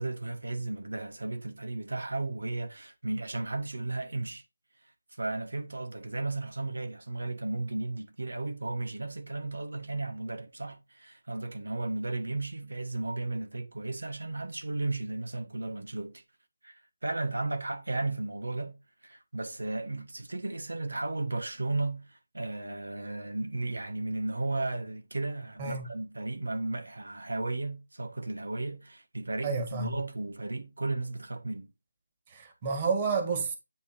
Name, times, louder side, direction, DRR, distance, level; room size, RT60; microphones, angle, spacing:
voice 1, 0.0-4.4 5.1-16.2 16.6-18.8 19.0-31.7, right 2 dB, 85° right, 1.4 m, -34 dB
voice 2, 29.4-29.9 32.3-33.5, right 4 dB, 25° right, 1.8 m, -30 dB
9.5 x 3.4 x 4.5 m
figure-of-eight pair, 165°, 0 cm